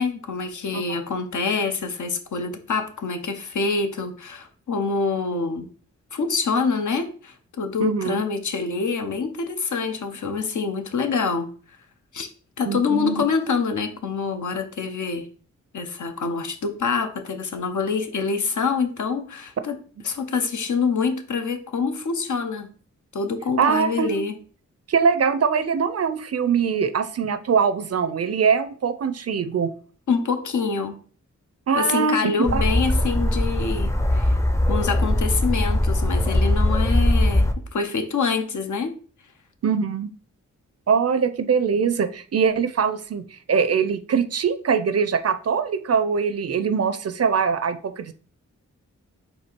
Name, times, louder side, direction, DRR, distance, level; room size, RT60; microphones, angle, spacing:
voice 1, 0.0-5.7 6.1-11.5 12.1-12.3 12.6-15.3 15.7-19.8 20.0-22.7 23.1-24.3 30.1-31.0 31.7-34.3 34.7-38.9, left 5 dB, 70° left, 7 dB, 0.8 m, -26 dB
voice 2, 7.8-8.2 12.7-13.2 23.6-24.1 24.9-29.7 31.7-32.6 39.6-40.1 40.9-48.1, right 6 dB, 50° right, 12 dB, 0.5 m, -22 dB
sound 1, 32.5-37.5, left 1 dB, 10° left, 0.5 m, -21 dB
4.4 x 2.7 x 4.4 m, 0.41 s
cardioid pair, 55°, 31 cm